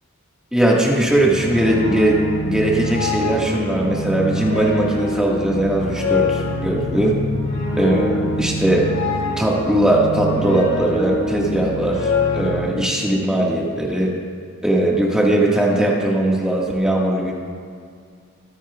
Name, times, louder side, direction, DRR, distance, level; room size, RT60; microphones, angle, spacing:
voice 1, 0.5-7.1 7.8-8.9 9.4-14.1 14.6-17.3, right 1 dB, 5° right, -4 dB, 1.7 m, -19 dB
sound 1, 1.0-12.7, left 2 dB, 85° left, 3.2 m, -25 dB
23.5 x 8.9 x 2.4 m, 2.2 s
head